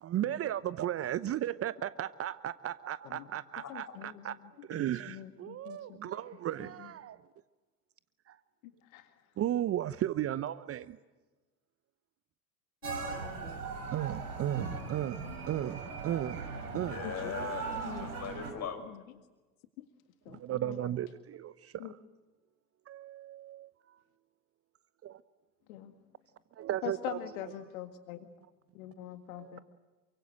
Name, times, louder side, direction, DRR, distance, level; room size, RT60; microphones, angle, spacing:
voice 1, 0.0-4.4 4.7-7.2 9.4-11.0 13.4-16.5 16.7-17.0 20.3-21.9 22.9-23.7 25.0-25.2 26.6-27.2 29.3-29.6, right 12 dB, 30° right, 16 dB, 0.9 m, -35 dB
voice 2, 3.7-6.0 6.6-6.9 8.8-9.1 12.8-13.6 17.0-17.3 17.8-18.1 18.8-19.0 19.8-19.9 20.3-20.9 21.8-21.9 25.7-25.9 26.8-28.3 28.7-29.6, left 13 dB, 60° left, 8 dB, 1.9 m, -44 dB
sound 1, 12.8-18.5, right 4 dB, 75° right, 6.4 m, -39 dB
voice 3, 16.9-18.8, left 7 dB, 35° left, 8 dB, 6.1 m, -40 dB
29.0 x 24.0 x 7.9 m, 1.2 s
figure-of-eight pair, 80°, 46 cm